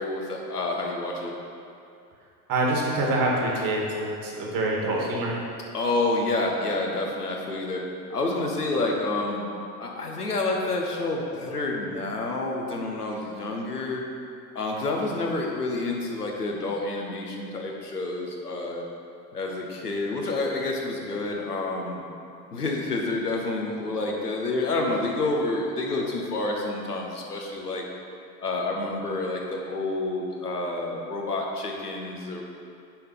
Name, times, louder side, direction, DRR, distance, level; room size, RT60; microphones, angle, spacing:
voice 1, 0.0-1.3 5.7-7.8 8.1-9.4 9.8-14.0 14.5-18.9 19.3-22.0 22.5-27.8 28.4-32.4, left 2 dB, 85° left, 0 dB, 1.0 m, -28 dB
voice 2, 2.5-5.4, right 2 dB, 45° right, -2 dB, 1.9 m, -26 dB
7.4 x 5.0 x 5.7 m, 2.4 s
figure-of-eight pair, 65°, 45 cm